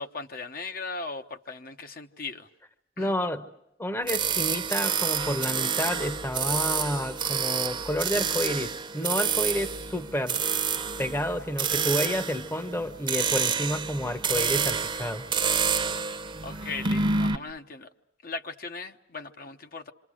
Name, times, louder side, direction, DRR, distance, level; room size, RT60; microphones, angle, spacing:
voice 1, 0.0-2.5 3.0-3.1 16.4-17.9 18.2-19.9, left 4 dB, 50° left, 1.0 m, -38 dB
voice 2, 3.0-3.4 3.8-10.4 11.0-15.3, equal, 15° left, 0.9 m, -30 dB
sound 1, 4.1-17.4, right 6 dB, 25° right, 0.9 m, -28 dB
27.5 x 26.5 x 6.3 m
head